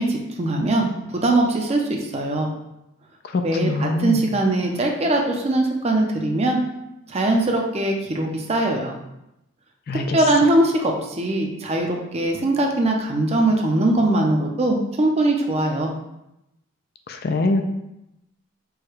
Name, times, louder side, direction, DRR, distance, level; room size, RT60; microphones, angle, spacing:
voice 1, 0.0-2.5 3.4-6.6 7.1-8.9 10.1-15.9, right 2 dB, 30° right, 2 dB, 0.5 m, -21 dB
voice 2, 3.3-4.3 9.9-10.2 17.1-17.6, left 2 dB, 45° left, 6 dB, 0.3 m, -23 dB
4.7 x 2.2 x 4.7 m, 0.87 s
head